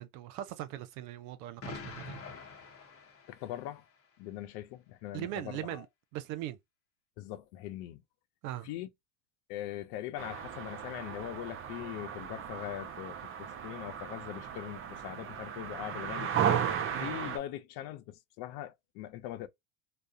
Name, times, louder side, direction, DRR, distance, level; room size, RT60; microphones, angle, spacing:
voice 1, 0.0-2.2 2.5-2.7 5.1-5.9 6.1-6.6 8.4-8.7 16.9-17.1, right 13 dB, 70° right, 0.6 m, -40 dB
Explosion, 1.6-3.8, left 4 dB, 30° left, 0.8 m, -46 dB
voice 2, 3.3-3.8 4.2-5.8 7.2-8.0 8.6-8.9 9.5-16.6 17.0-19.5, left 13 dB, 60° left, 0.6 m, -41 dB
sound 1, 10.2-17.4, right 8 dB, 30° right, 0.5 m, -35 dB
2.3 x 2.0 x 2.5 m
supercardioid pair, 100°, 44 cm